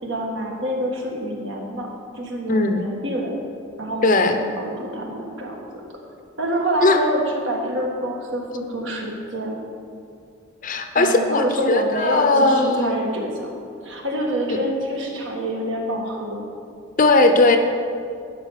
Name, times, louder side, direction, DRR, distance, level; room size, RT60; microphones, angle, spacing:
voice 1, 0.0-1.9 2.1-3.3 3.8-5.8 6.4-9.6 10.9-13.6 13.8-16.4, right 1 dB, 60° right, 0 dB, 1.7 m, -26 dB
voice 2, 2.5-2.8 4.0-4.4 6.8-7.0 10.6-12.9 17.0-17.6, left 2 dB, 40° left, 6 dB, 0.7 m, -18 dB
12.0 x 5.1 x 6.6 m, 2.4 s
head